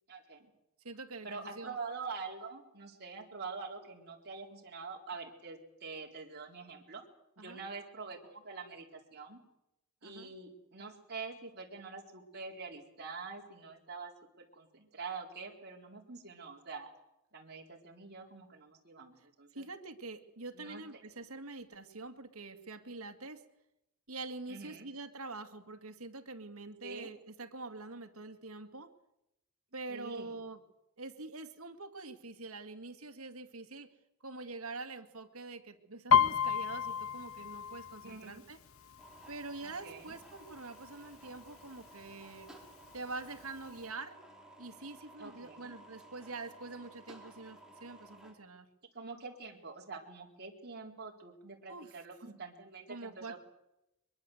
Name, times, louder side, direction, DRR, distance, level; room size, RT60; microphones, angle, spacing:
voice 1, 0.1-0.5 1.2-7.0 7.4-9.4 10.0-14.1 14.4-16.9 17.3-19.6 20.5-21.0 24.5-24.9 26.8-27.1 29.9-30.4 38.0-38.4 39.6-40.1 45.2-45.7 48.9-53.4, right 4 dB, 50° right, 0 dB, 4.1 m, -45 dB
voice 2, 0.8-1.8 7.4-7.6 10.0-10.3 19.5-23.4 24.1-28.9 29.7-30.6 31.0-33.9 34.2-38.6 39.3-42.5 42.9-44.2 44.6-48.7 51.7-51.9 52.9-53.4, right 3 dB, 75° right, 8 dB, 2.3 m, -45 dB
Piano, 36.1-39.8 40.1-40.5 40.9-41.5 42.1-42.2 42.4-43.4 43.8-43.9, left 7 dB, 70° left, 1.0 m, -31 dB
sound 1, 39.0-48.3, right 1 dB, 5° right, 4.5 m, -56 dB
23.0 x 22.5 x 8.1 m, 0.88 s
head